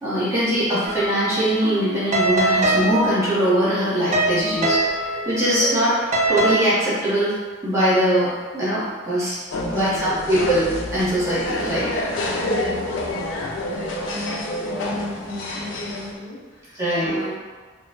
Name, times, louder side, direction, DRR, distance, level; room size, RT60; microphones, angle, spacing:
voice 1, 0.0-5.9 6.3-7.4 7.6-9.4 9.7-11.9 16.8-17.2, equal, 15° right, -11 dB, 0.8 m, -21 dB
sound 1, 0.8-6.5, right 2 dB, 35° right, 0.4 m, -24 dB
sound 2, 9.5-16.1, left 1 dB, 75° left, 0.4 m, -28 dB
voice 2, 9.6-10.2 12.4-13.0 13.2-17.4, left 1 dB, 50° left, -7 dB, 0.8 m, -35 dB
3.5 x 2.1 x 2.7 m, 1.4 s
head